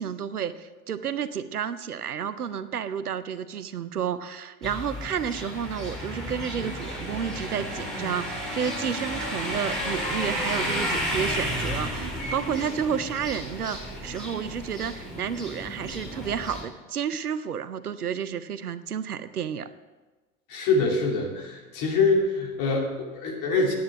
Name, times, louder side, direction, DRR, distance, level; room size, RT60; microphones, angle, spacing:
voice 1, 0.0-19.7, right 7 dB, 85° right, 14 dB, 0.6 m, -31 dB
sound 1, 4.6-16.6, equal, ahead, 4.1 m, -32 dB
voice 2, 20.5-23.7, left 3 dB, 45° left, 0 dB, 2.8 m, -24 dB
9.5 x 9.4 x 5.7 m, 1.3 s
figure-of-eight pair, 75°, 44 cm